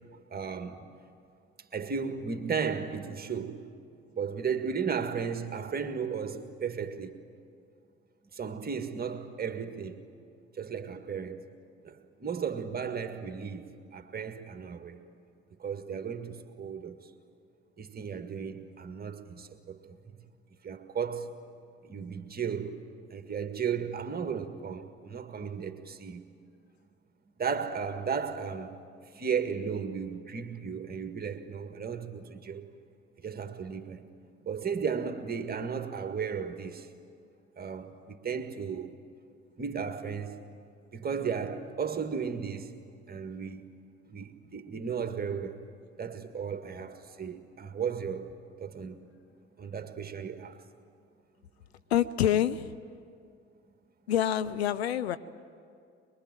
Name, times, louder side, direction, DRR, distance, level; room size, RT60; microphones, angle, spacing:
voice 1, 0.3-0.9 1.7-3.7 4.1-7.2 8.3-10.1 10.6-11.5 11.8-15.0 15.6-17.1 17.8-20.2 20.6-21.4 21.8-26.2 27.4-28.8 29.1-32.7 33.2-34.1 34.4-36.9 37.6-38.9 39.6-40.5 40.9-42.8 43.1-43.6 44.1-45.7 46.0-48.3 48.6-49.1 49.6-50.6, right 6 dB, 30° right, 1.9 m, -35 dB
voice 2, 51.9-52.8 54.1-55.2, left 10 dB, 75° left, 0.6 m, -26 dB
23.0 x 23.0 x 9.1 m
figure-of-eight pair, 50°, 32 cm